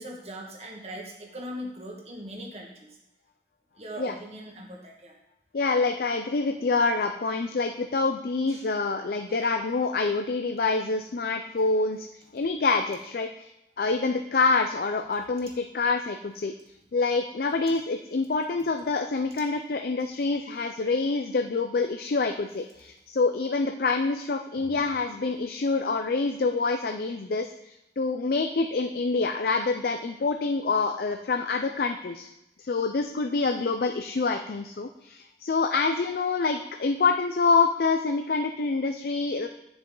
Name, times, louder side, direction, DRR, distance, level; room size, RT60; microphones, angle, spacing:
voice 1, 0.0-3.0 3.8-5.1 8.5-8.7 9.3-9.4 20.2-20.3 24.5-24.9, equal, 35° right, -1 dB, 1.6 m, -40 dB
voice 2, 5.5-12.1 12.3-13.5 13.8-16.5 16.9-32.3 32.7-39.5, left 4 dB, 55° left, 6 dB, 0.4 m, -26 dB
8.8 x 7.0 x 3.8 m, 0.86 s
head